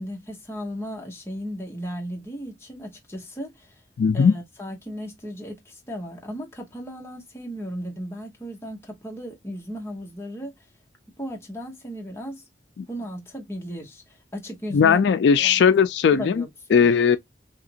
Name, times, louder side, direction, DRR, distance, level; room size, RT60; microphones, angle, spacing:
voice 1, 0.0-3.8 4.1-10.5 11.2-12.4 12.9-15.0 15.4-15.6 16.1-16.9, equal, 15° left, 0.8 m, -35 dB
voice 2, 4.0-4.3 12.8-12.9 14.7-16.4 16.7-17.2, left 6 dB, 75° left, 0.3 m, -18 dB
2.9 x 2.5 x 2.7 m
head